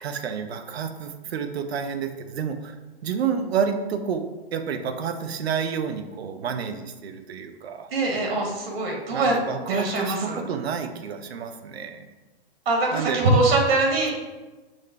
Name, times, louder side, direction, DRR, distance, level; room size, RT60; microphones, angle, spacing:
voice 1, 0.0-2.8 3.0-4.2 4.5-7.9 9.1-12.1 12.9-13.2, right 6 dB, 90° right, 8 dB, 0.6 m, -29 dB
voice 2, 7.9-9.3 9.7-10.4 12.6-14.1, right 2 dB, 70° right, 0 dB, 1.3 m, -23 dB
6.3 x 2.1 x 3.3 m, 1.2 s
hypercardioid pair, 155°, 31 cm